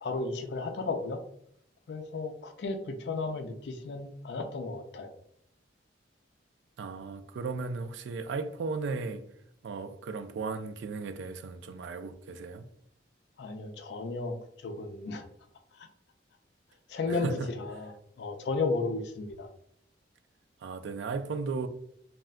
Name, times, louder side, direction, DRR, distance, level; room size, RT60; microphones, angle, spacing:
voice 1, 0.0-1.2 1.9-5.1 13.4-14.4 14.6-15.2 15.7-15.9 16.9-19.5, left 3 dB, 60° left, 0.4 m, -34 dB
voice 2, 6.8-9.2 9.6-12.6 17.1-17.5 20.6-21.7, right 4 dB, 70° right, 0.3 m, -35 dB
2.3 x 2.1 x 3.5 m
head